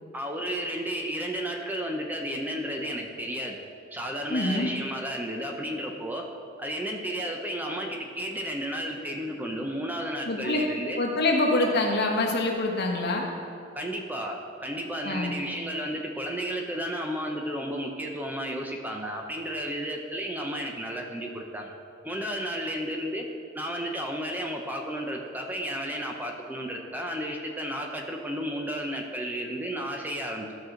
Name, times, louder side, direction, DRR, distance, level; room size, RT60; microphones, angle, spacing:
voice 1, 0.1-3.6 3.9-6.3 6.6-11.0 13.8-21.7 22.0-23.3 23.5-30.5, equal, 10° right, 1 dB, 0.7 m, -33 dB
voice 2, 4.3-4.7 10.2-10.7 11.0-13.2 15.0-15.4, left 2 dB, 55° left, -1 dB, 1.4 m, -25 dB
14.0 x 6.1 x 3.9 m, 2.5 s
head